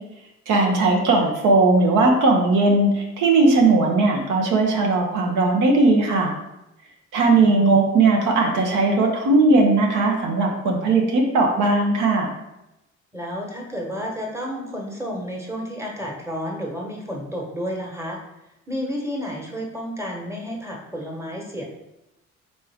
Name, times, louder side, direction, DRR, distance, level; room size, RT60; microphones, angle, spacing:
voice 1, 0.5-6.3 7.1-12.3, right 3 dB, 85° right, 1 dB, 0.9 m, -18 dB
voice 2, 7.3-7.8 13.1-18.2 18.7-21.6, equal, 10° right, -2 dB, 1.1 m, -31 dB
4.1 x 3.5 x 3.5 m, 0.91 s
cardioid pair, 90°, 30 cm